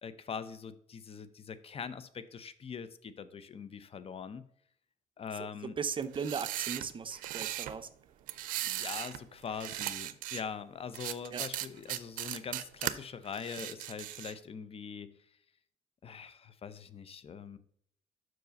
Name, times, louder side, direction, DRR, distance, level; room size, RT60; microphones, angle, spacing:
voice 1, 0.0-4.5 5.2-5.8 8.6-15.2 16.0-17.6, left 6 dB, 45° left, 15 dB, 0.6 m, -42 dB
voice 2, 5.4-7.9 11.3-11.4, right 6 dB, 40° right, 12 dB, 0.6 m, -37 dB
sound 1, 6.0-7.8 8.3-9.2 9.5-10.4 10.9-12.9 13.3-14.4, right 14 dB, 85° right, 0.4 m, -38 dB
6.0 x 4.8 x 5.2 m, 0.66 s
cardioid pair, 75°, 14 cm